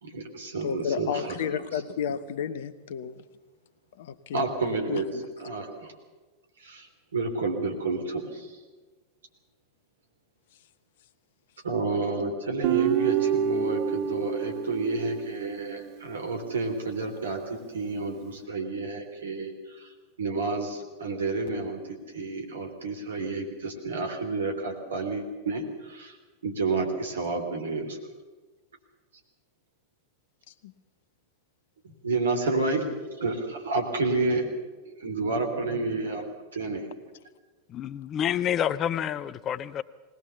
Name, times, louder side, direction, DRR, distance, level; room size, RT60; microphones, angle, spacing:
voice 1, 0.0-1.8 4.3-5.9 6.6-8.6 11.6-26.2 26.4-28.0 31.8-34.5 34.8-36.2 36.5-36.9, right 3 dB, 65° right, 3.1 m, -30 dB
voice 2, 0.6-3.3 3.9-4.5 4.9-5.2 30.5-30.7, left 7 dB, 55° left, 0.9 m, -32 dB
Guitar, 12.6-15.9, right 8 dB, 40° right, 0.9 m, -28 dB
voice 3, 37.7-39.8, left 10 dB, 30° left, 0.6 m, -28 dB
20.5 x 18.5 x 6.9 m
figure-of-eight pair, 90°, 0 cm